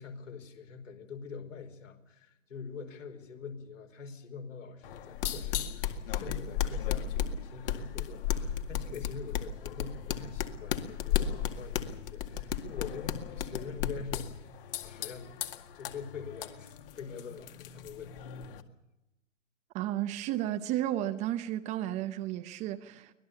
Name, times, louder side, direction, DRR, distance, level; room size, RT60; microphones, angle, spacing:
voice 1, 0.0-7.1 7.4-15.3 15.7-18.4, left 5 dB, 70° left, 5.1 m, -44 dB
sound 1, 4.8-18.6, left 9 dB, 45° left, 2.0 m, -35 dB
voice 2, 19.7-23.1, right 13 dB, 20° right, 0.7 m, -33 dB
24.5 x 19.0 x 7.0 m
hypercardioid pair, 130°, 39 cm